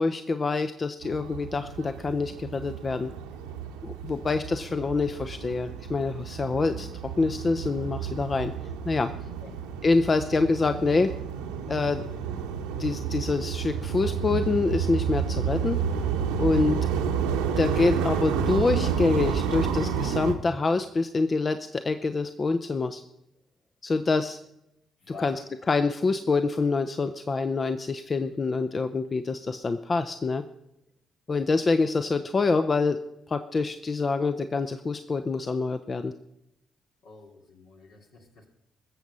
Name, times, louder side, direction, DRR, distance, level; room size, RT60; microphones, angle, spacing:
voice 1, 0.0-3.1 3.8-6.9 7.2-8.5 8.9-9.1 9.8-11.1 11.7-12.0 12.8-15.8 16.4-16.8 17.6-23.0 23.8-24.4 25.2-25.4 25.7-30.4 31.3-33.0 33.3-36.1, left 3 dB, 35° left, 9 dB, 0.7 m, -26 dB
sound 1, 1.0-20.3, right 7 dB, 80° right, 1.1 m, -30 dB
voice 2, 25.0-25.4 37.0-38.5, left 4 dB, 65° left, 1 dB, 2.7 m, -46 dB
21.0 x 7.4 x 5.5 m, 0.85 s
figure-of-eight pair, 45°, 0 cm